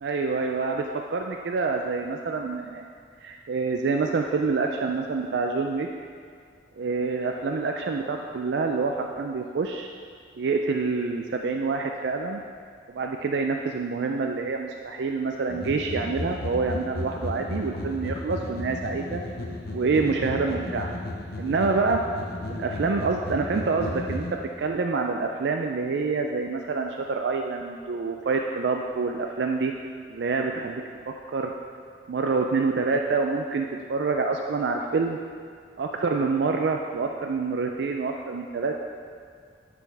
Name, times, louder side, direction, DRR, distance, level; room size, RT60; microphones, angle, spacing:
voice 1, 0.0-2.9 3.2-5.9 6.8-9.9 10.4-12.4 12.9-19.2 19.7-20.9 21.4-22.0 22.5-24.3 24.6-29.7 30.1-30.8 31.3-31.5 32.1-35.2 35.8-38.7, right 4 dB, 70° right, 2 dB, 0.4 m, -27 dB
sound 1, 15.5-24.3, left 1 dB, 55° left, 0.8 m, -34 dB
9.7 x 5.1 x 3.4 m, 2.1 s
head